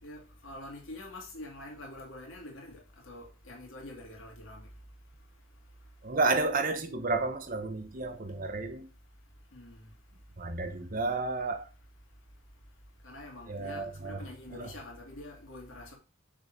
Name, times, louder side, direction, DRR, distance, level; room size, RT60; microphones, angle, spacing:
voice 1, 0.0-4.7 9.5-9.9 13.0-16.0, left 1 dB, 75° left, 2.3 m, -46 dB
voice 2, 6.0-8.8 10.4-11.7 13.5-14.2 14.6-14.7, right 3 dB, 40° right, 0.8 m, -31 dB
6.5 x 3.8 x 5.2 m
head